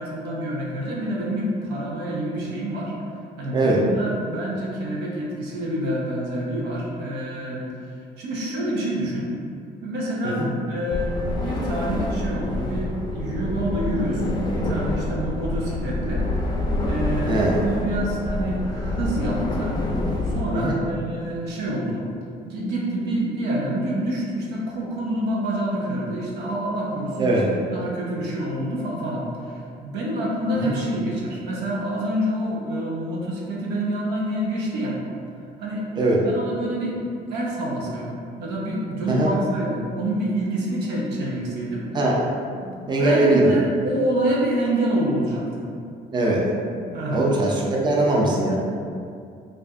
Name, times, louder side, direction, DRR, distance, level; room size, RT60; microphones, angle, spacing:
voice 1, 0.0-2.9 3.4-7.6 8.2-9.3 9.8-16.2 16.8-19.8 20.3-22.0 22.5-35.0 35.6-35.9 36.1-37.0 37.3-41.9 42.6-45.6 46.9-47.3, right 1 dB, 85° right, -4 dB, 0.8 m, -27 dB
sound 1, 10.9-20.4, left 1 dB, 25° left, 0.5 m, -27 dB
voice 2, 17.3-17.6 20.5-20.8 27.2-27.4 30.5-30.8 36.0-36.2 39.1-39.3 41.9-42.3 42.9-43.6 46.1-46.4 47.1-48.6, right 2 dB, 25° right, -3 dB, 0.5 m, -21 dB
4.5 x 2.5 x 2.4 m, 2.4 s
cardioid pair, 110°, 17 cm